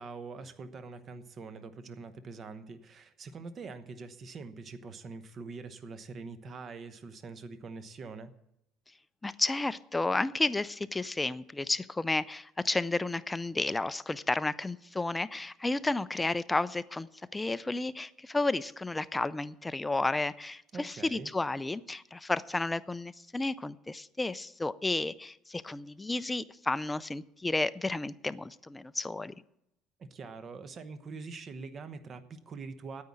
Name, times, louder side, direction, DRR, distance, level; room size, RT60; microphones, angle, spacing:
voice 1, 0.0-8.3 20.7-21.3 30.0-33.0, right 4 dB, 35° right, 11 dB, 1.0 m, -44 dB
voice 2, 9.2-29.3, left 2 dB, 10° left, 15 dB, 0.4 m, -32 dB
9.4 x 8.9 x 8.5 m, 0.81 s
cardioid pair, 135°, 0 cm